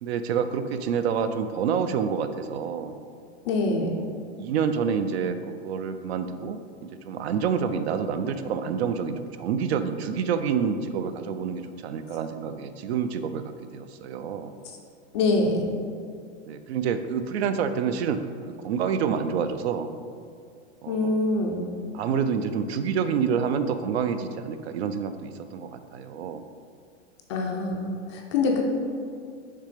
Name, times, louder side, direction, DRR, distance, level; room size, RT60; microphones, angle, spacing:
voice 1, 0.0-2.9 3.9-4.0 4.4-6.6 7.1-13.4 13.7-14.5 16.5-19.9 20.8-21.2 21.9-26.4, right 6 dB, 65° right, 10 dB, 0.5 m, -28 dB
voice 2, 3.4-3.9 14.6-14.8 15.1-15.6 20.9-21.6 27.3-28.6, left 3 dB, 25° left, 2 dB, 0.4 m, -25 dB
6.8 x 3.3 x 5.0 m, 2.2 s
supercardioid pair, 160°, 35 cm